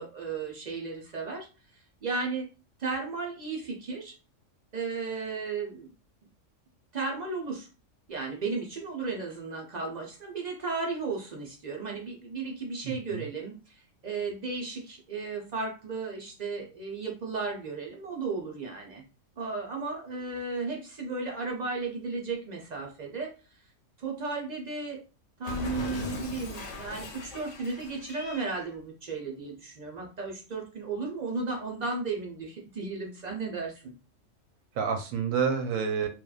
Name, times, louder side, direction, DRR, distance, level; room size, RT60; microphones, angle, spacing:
voice 1, 0.0-1.5 1.7-2.5 2.8-4.1 4.7-5.9 6.9-7.7 8.1-19.0 19.4-23.3 24.0-25.0 25.4-33.9, right 4 dB, 55° right, 0 dB, 0.4 m, -34 dB
voice 2, 12.8-13.3 25.7-26.2 34.7-36.1, right 6 dB, 85° right, 6 dB, 1.0 m, -29 dB
Cat, 25.4-28.7, left 3 dB, 75° left, 1.0 m, -40 dB
2.9 x 2.2 x 2.3 m, 0.32 s
omnidirectional pair, 1.3 m